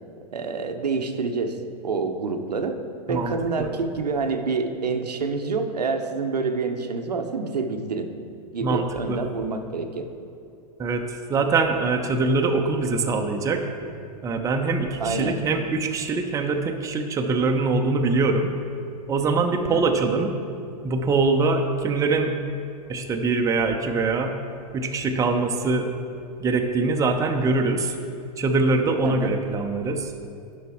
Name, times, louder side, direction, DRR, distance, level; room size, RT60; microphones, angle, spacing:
voice 1, 0.3-2.8 3.1-8.1 8.5-10.1 15.0-15.4 19.7-20.0 29.0-29.3, right 4 dB, 90° right, 6 dB, 0.7 m, -27 dB
voice 2, 3.1-3.7 8.6-9.2 10.8-13.6 14.2-18.5 19.1-20.3 20.8-22.3 22.9-24.3 24.7-25.9 26.4-28.0 28.4-30.1, right 3 dB, 15° right, 4 dB, 0.6 m, -23 dB
10.5 x 5.4 x 3.5 m, 2.5 s
hypercardioid pair, 105°, 20 cm